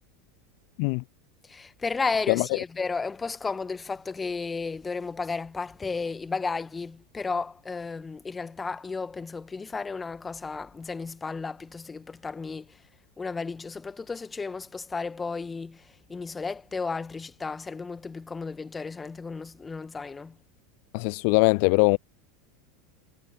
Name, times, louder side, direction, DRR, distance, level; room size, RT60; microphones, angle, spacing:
voice 1, 1.4-12.8 13.2-20.4, left 4 dB, 15° left, 2.0 m, -33 dB
voice 2, 20.9-22.0, left 35 dB, 55° left, 0.4 m, -21 dB
figure-of-eight pair, 80°, 0 cm